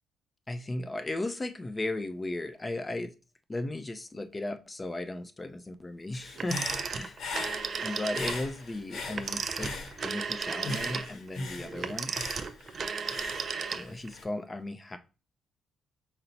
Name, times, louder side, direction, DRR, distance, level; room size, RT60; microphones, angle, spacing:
voice 1, 0.5-3.1 3.5-6.6 6.9-7.2 7.8-9.7 10.0-12.1 13.7-15.0, left 2 dB, 20° left, 0.4 m, -36 dB
Human voice / Breathing, 6.1-10.3 10.6-14.2, left 3 dB, 60° left, 0.8 m, -40 dB
Telephone, 6.4-8.4 9.1-14.1, right 5 dB, 40° right, 0.4 m, -34 dB
5.5 x 2.0 x 4.0 m
cardioid pair, 140°, 0 cm